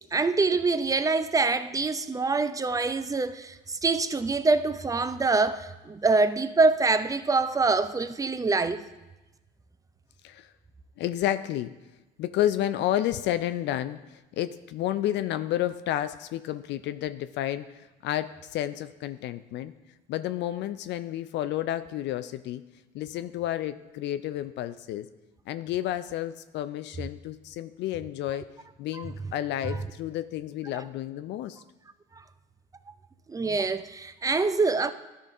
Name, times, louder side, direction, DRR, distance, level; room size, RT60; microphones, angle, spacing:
voice 1, 0.1-8.9 28.9-29.0 29.7-29.8 33.3-34.9, right 3 dB, 15° right, 0.5 m, -25 dB
voice 2, 11.0-11.7 12.2-19.7 20.1-22.6 22.9-25.1 25.5-28.4 28.8-31.6, left 12 dB, 55° left, 0.4 m, -31 dB
12.5 x 5.1 x 3.6 m
hypercardioid pair, 70°, 21 cm